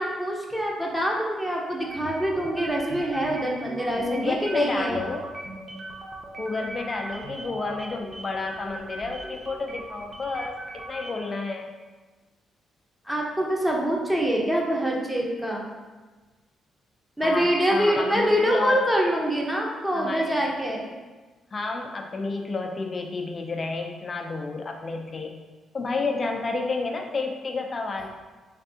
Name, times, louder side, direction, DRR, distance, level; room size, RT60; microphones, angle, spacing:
voice 1, 0.0-5.0 13.1-15.6 17.2-20.9, equal, 5° right, -2 dB, 0.8 m, -25 dB
sound 1, 1.8-11.4, right 2 dB, 40° right, 0.6 m, -39 dB
voice 2, 3.9-5.3 6.4-10.6 10.9-11.7 17.2-18.8 19.9-20.4 21.5-25.4 25.7-28.1, left 3 dB, 40° left, 2 dB, 0.5 m, -30 dB
3.4 x 3.3 x 2.7 m, 1.3 s
supercardioid pair, 50°, 0 cm